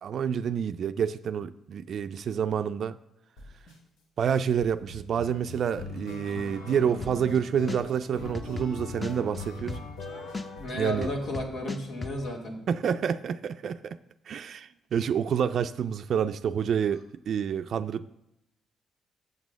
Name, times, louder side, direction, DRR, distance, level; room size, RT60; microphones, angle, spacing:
voice 1, 0.0-3.0 4.2-9.8 10.7-11.1 12.7-14.0 14.3-18.1, right 8 dB, 60° right, 0.3 m, -28 dB
sound 1, 3.4-3.8 4.3-11.5, left 3 dB, 90° left, 1.3 m, -41 dB
sound 2, 7.0-7.4 7.7-10.0 10.3-12.1, left 3 dB, 20° left, 0.8 m, -36 dB
voice 2, 10.6-12.7, left 1 dB, 70° left, 1.9 m, -33 dB
7.3 x 6.1 x 6.2 m
cardioid pair, 90°, 0 cm